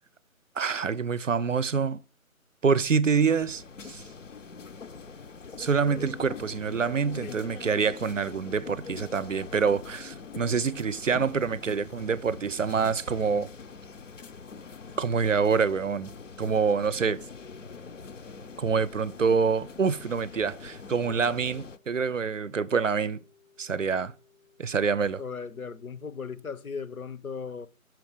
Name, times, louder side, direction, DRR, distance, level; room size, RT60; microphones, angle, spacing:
voice 1, 0.6-2.0 2.6-4.0 5.6-13.5 15.0-16.1 16.4-17.2 18.6-23.2 23.6-24.1 24.6-25.2, right 5 dB, 65° right, 0.5 m, -26 dB
sound 1, 3.0-21.8, left 5 dB, 60° left, 0.6 m, -44 dB
sound 2, 21.3-26.2, left 6 dB, ahead, 0.4 m, -64 dB
voice 2, 25.2-27.7, left 5 dB, 85° left, 0.8 m, -37 dB
6.2 x 4.6 x 4.8 m
figure-of-eight pair, 175°, 42 cm